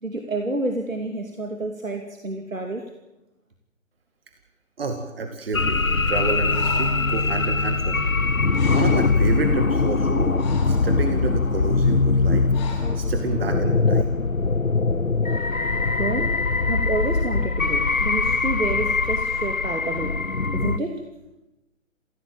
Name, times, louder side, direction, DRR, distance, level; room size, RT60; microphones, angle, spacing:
voice 1, 0.0-2.8 16.0-16.4 16.7-20.2 20.5-21.0, right 2 dB, 75° right, 4 dB, 2.8 m, -29 dB
voice 2, 4.8-8.1 8.7-14.1, right 3 dB, 45° right, 5 dB, 2.4 m, -29 dB
sound 1, 5.5-20.8, left 3 dB, 85° left, 1.1 m, -22 dB
Breathing, 6.5-7.0 8.2-8.3 8.5-9.2 9.9-10.9 12.5-13.0, left 2 dB, 20° left, 5.6 m, -37 dB
24.5 x 16.5 x 8.9 m, 0.98 s
figure-of-eight pair, 145°, 40 cm